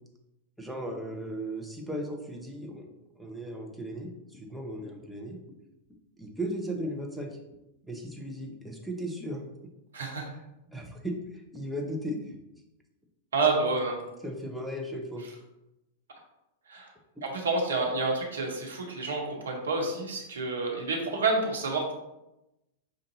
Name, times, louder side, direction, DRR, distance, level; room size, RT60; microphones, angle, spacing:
voice 1, 0.6-2.9 3.2-5.4 6.2-7.4 7.8-9.4 10.7-11.1 11.5-12.4 14.2-15.2 17.2-17.3, equal, ahead, 0 dB, 0.8 m, -36 dB
voice 2, 9.9-10.3 13.3-14.0 16.7-16.9 17.2-21.9, right 3 dB, 75° right, 1 dB, 0.9 m, -29 dB
5.3 x 2.6 x 2.7 m, 0.93 s
figure-of-eight pair, 95°, 0 cm